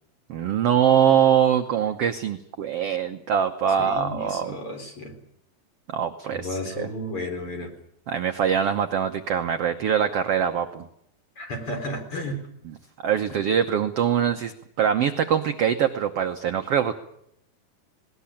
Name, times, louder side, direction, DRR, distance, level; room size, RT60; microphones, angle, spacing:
voice 1, 0.3-4.6 5.9-6.9 8.1-10.8 12.6-17.0, right 8 dB, 80° right, 6 dB, 1.3 m, -23 dB
voice 2, 3.8-5.1 6.3-7.7 11.4-12.4, left 1 dB, 35° left, 4 dB, 4.7 m, -33 dB
20.0 x 19.0 x 8.6 m, 0.74 s
omnidirectional pair, 4.2 m